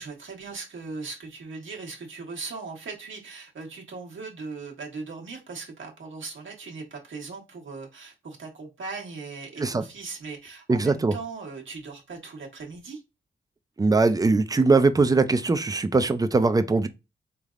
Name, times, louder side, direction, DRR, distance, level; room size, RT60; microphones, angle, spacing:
voice 1, 0.0-13.0, right 4 dB, 75° right, 1.1 m, -39 dB
voice 2, 10.7-11.1 13.8-16.9, right 3 dB, 20° right, 0.4 m, -21 dB
4.0 x 3.3 x 2.4 m
wide cardioid pair, 105°, 20 cm